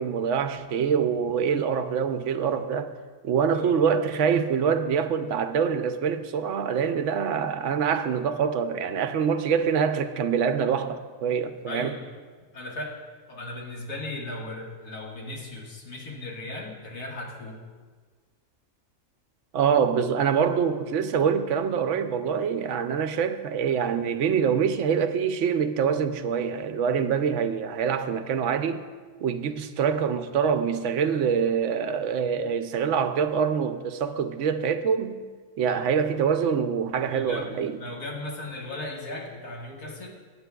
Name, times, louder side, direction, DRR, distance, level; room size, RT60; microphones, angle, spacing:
voice 1, 0.0-2.9 3.2-11.9 19.5-28.9 29.2-35.2 35.6-37.8, right 7 dB, 65° right, 0.8 m, -25 dB
voice 2, 11.7-12.1 12.5-13.0 13.3-17.6 35.7-35.8 37.1-37.5 37.8-40.1, left 2 dB, 85° left, 2.2 m, -37 dB
20.5 x 8.6 x 2.3 m
omnidirectional pair, 1.6 m